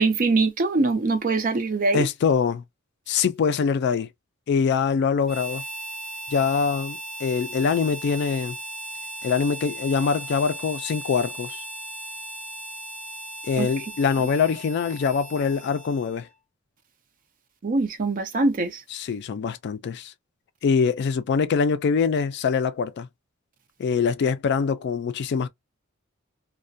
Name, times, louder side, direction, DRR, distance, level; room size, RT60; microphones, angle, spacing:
voice 1, 0.0-2.1 13.6-13.7 17.6-18.8, right 3 dB, 40° right, 0.5 m, -23 dB
voice 2, 1.9-2.6 3.1-4.1 4.5-5.6 6.3-8.6 9.2-11.6 13.4-16.3 18.9-20.1 20.6-23.1 23.8-25.5, left 6 dB, 55° left, 0.3 m, -24 dB
Harmonica, 5.2-16.3, right 1 dB, ahead, 0.7 m, -37 dB
2.3 x 2.1 x 2.5 m
head